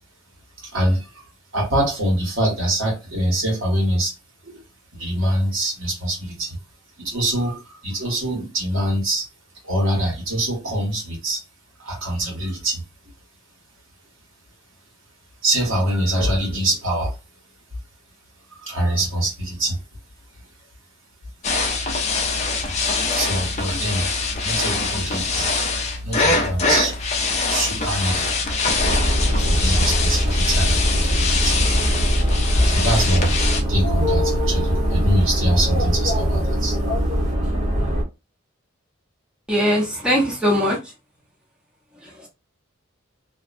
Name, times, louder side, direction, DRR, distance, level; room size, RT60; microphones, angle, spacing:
voice 1, 0.6-1.1 1.5-4.1 4.4-4.6 4.9-6.6 7.0-9.3 9.6-11.4 11.8-12.8 15.4-17.1 18.5-19.8 23.1-24.1 24.4-25.7 26.0-26.9 27.5-28.3 29.4-31.6 32.5-33.4 33.7-36.8, right 1 dB, 70° right, 1.4 m, -24 dB
sound 1, 21.4-33.6, left 3 dB, 35° left, 0.5 m, -23 dB
sound 2, 28.8-38.0, equal, 35° right, 0.9 m, -21 dB
voice 2, 39.5-40.8, equal, 5° right, 0.7 m, -20 dB
2.6 x 2.1 x 2.5 m
head